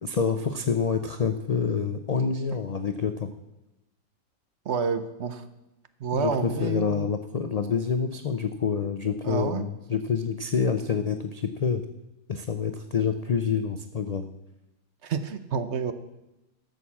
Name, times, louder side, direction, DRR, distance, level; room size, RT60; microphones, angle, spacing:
voice 1, 0.0-3.3 6.1-11.8 12.3-14.3, left 6 dB, 60° left, 8 dB, 0.4 m, -27 dB
voice 2, 4.6-5.4 6.0-7.1 9.2-9.7 15.0-15.9, right 6 dB, 60° right, 11 dB, 0.9 m, -29 dB
12.5 x 6.8 x 7.2 m, 0.96 s
omnidirectional pair, 1.5 m